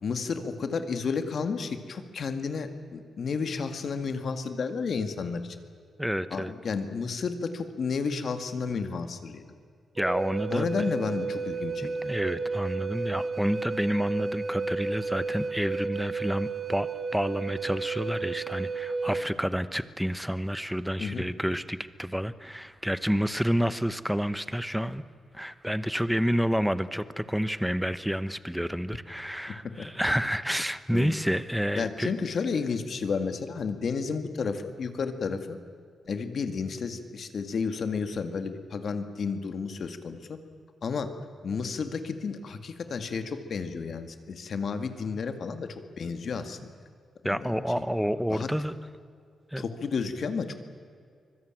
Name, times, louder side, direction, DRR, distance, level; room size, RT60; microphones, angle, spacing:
voice 1, 0.0-5.6 6.3-9.4 10.5-12.1 21.0-21.3 29.8-29.9 30.9-31.1 31.8-35.6 36.1-40.4 40.8-41.1 41.4-46.6 47.2-47.6 48.3-48.5 49.6-50.5, left 5 dB, 50° left, 9 dB, 1.9 m, -32 dB
voice 2, 6.0-6.5 9.9-10.8 11.8-16.9 17.1-25.0 25.3-32.1 47.2-48.7 49.5-49.7, equal, ahead, 14 dB, 0.9 m, -29 dB
Wind instrument woodwind instrument, 10.0-19.3, right 4 dB, 30° right, 1.0 m, -32 dB
24.5 x 22.0 x 9.0 m, 2.2 s
wide cardioid pair, 145°, 0 cm